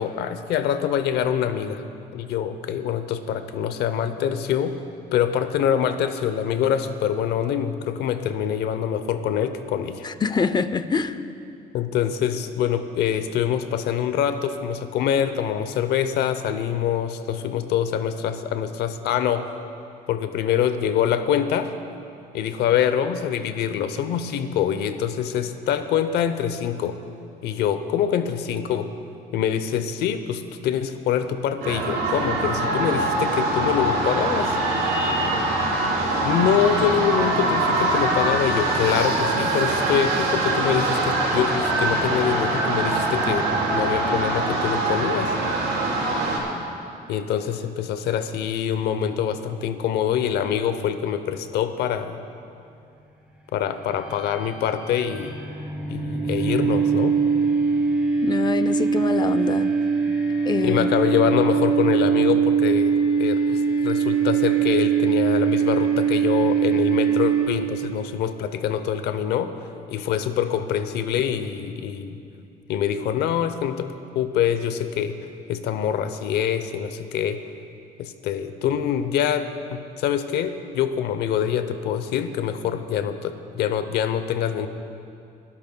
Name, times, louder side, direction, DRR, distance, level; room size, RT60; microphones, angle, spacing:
voice 1, 0.0-1.8 2.1-4.8 5.1-10.1 11.7-19.5 20.1-21.7 22.3-27.0 27.4-28.9 29.3-34.6 36.2-45.3 47.1-52.2 53.5-55.4 55.9-57.2 60.6-69.5 69.9-72.2 72.7-75.1 75.5-77.4 78.0-84.7, left 9 dB, 75° left, 0.7 m, -25 dB
voice 2, 10.0-11.2 58.2-59.7 60.5-60.9, left 5 dB, 25° left, 0.6 m, -25 dB
sound 1, 31.6-46.4, right 2 dB, 70° right, 3.7 m, -23 dB
sound 2, 53.8-67.9, right 6 dB, 5° right, 2.5 m, -22 dB
27.5 x 13.0 x 2.3 m
cardioid pair, 110°, 17 cm